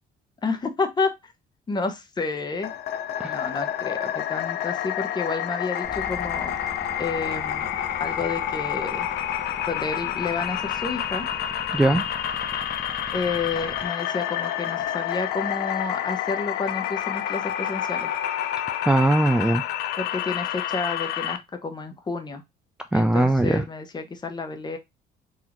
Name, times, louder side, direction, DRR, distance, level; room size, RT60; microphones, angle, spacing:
voice 1, 0.4-1.1 1.7-2.7 3.2-6.5 7.0-7.7 8.0-9.1 9.7-11.3 13.1-18.1 20.0-22.4 22.9-24.8, left 4 dB, 25° left, 7 dB, 0.8 m, -30 dB
sound 1, 2.6-21.4, left 11 dB, 75° left, 0.5 m, -29 dB
sound 2, 5.8-13.9, right 2 dB, 25° right, 0.8 m, -43 dB
voice 2, 11.7-12.0 18.9-19.6 22.9-23.6, right 1 dB, 5° right, 7 dB, 0.3 m, -20 dB
4.0 x 2.7 x 2.9 m, 0.21 s
cardioid pair, 110°, 17 cm